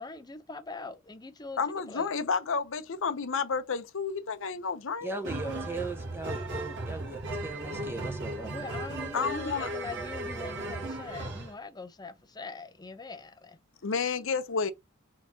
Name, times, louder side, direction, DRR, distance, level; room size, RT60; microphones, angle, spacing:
voice 1, 0.0-1.6 1.9-2.1 8.5-13.6, left 3 dB, 20° left, 0.6 m, -42 dB
voice 2, 1.6-5.1 9.1-9.9 13.8-14.7, left 5 dB, 65° left, 0.7 m, -31 dB
voice 3, 5.0-8.5, right 3 dB, 10° right, 1.4 m, -38 dB
sound 1, 5.2-11.5, right 2 dB, 60° right, 1.5 m, -36 dB
4.3 x 4.0 x 2.8 m
head